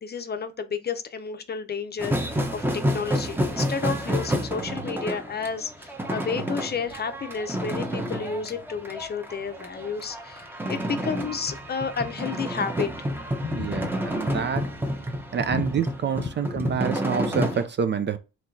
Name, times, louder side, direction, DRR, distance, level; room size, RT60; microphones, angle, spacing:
voice 1, 0.0-12.9 13.4-13.9 15.5-15.7 16.5-16.8, left 5 dB, 35° left, 0.6 m, -31 dB
sound 1, 2.0-17.7, equal, 5° right, 0.7 m, -30 dB
voice 2, 13.5-14.7 15.3-18.2, right 7 dB, 40° right, 0.4 m, -27 dB
4.4 x 2.9 x 2.6 m
cardioid pair, 90°, 30 cm